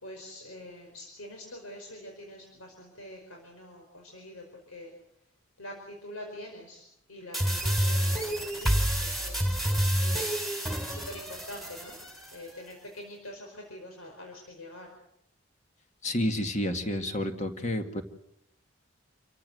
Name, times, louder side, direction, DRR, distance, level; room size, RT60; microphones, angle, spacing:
voice 1, 0.0-4.9 5.6-6.8 7.1-9.5 10.0-10.5 10.9-12.0 12.3-14.9, left 1 dB, 90° left, 1 dB, 5.2 m, -45 dB
sound 1, 7.3-12.3, equal, ahead, 4.3 m, -28 dB
voice 2, 16.0-18.0, left 1 dB, 35° left, 6 dB, 2.0 m, -30 dB
28.5 x 15.0 x 7.9 m, 0.76 s
head